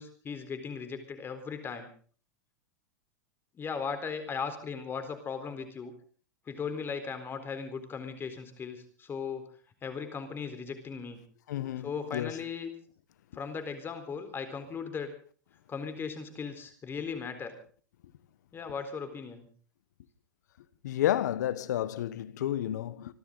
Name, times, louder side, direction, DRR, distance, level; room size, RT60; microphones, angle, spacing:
voice 1, 0.0-1.9 3.5-5.9 6.5-9.5 9.8-11.2 11.8-12.7 13.3-15.1 15.7-17.5 18.5-19.5, left 6 dB, 25° left, 4.0 m, -37 dB
voice 2, 11.5-12.3 20.8-23.1, left 12 dB, 75° left, 1.1 m, -31 dB
26.5 x 13.0 x 3.9 m
hypercardioid pair, 115°, 10 cm